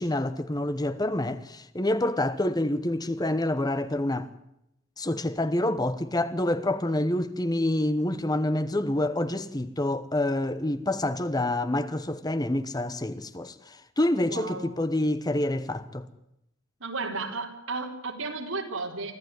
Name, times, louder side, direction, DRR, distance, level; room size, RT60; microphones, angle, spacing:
voice 1, 0.0-4.3 5.0-16.1, left 1 dB, 20° left, 1.1 m, -27 dB
voice 2, 14.3-14.7 16.8-19.1, right 3 dB, 70° right, 4.6 m, -33 dB
25.0 x 15.0 x 9.5 m
head